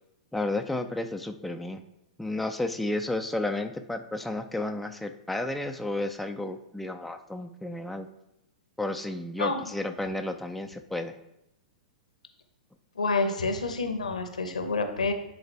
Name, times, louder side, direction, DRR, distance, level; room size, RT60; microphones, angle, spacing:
voice 1, 0.3-1.8 2.2-8.1 8.8-11.1, left 2 dB, ahead, 5 dB, 0.4 m, -32 dB
voice 2, 12.9-15.1, left 3 dB, 75° left, 7 dB, 0.9 m, -28 dB
10.0 x 3.9 x 3.3 m, 0.84 s
figure-of-eight pair, 100°, 4 cm